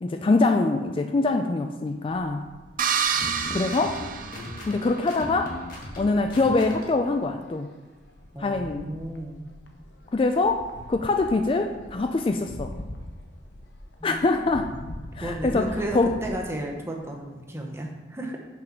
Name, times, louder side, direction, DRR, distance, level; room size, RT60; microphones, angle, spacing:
voice 1, 0.0-2.4 3.5-4.0 4.7-5.5 6.0-7.7 8.4-8.9 10.1-12.7 14.0-14.7 15.1-16.1, left 3 dB, 30° left, 6 dB, 0.3 m, -24 dB
sound 1, 1.9-17.2, left 1 dB, 70° left, 0.8 m, -44 dB
sound 2, 2.8-5.0, right 7 dB, 45° right, 0.5 m, -28 dB
sound 3, 3.0-7.1, left 1 dB, 50° left, 1.5 m, -38 dB
voice 2, 8.3-9.5 14.0-14.8 15.2-18.4, right 1 dB, 15° right, 1 dB, 0.8 m, -34 dB
6.0 x 5.0 x 5.7 m, 1.2 s
head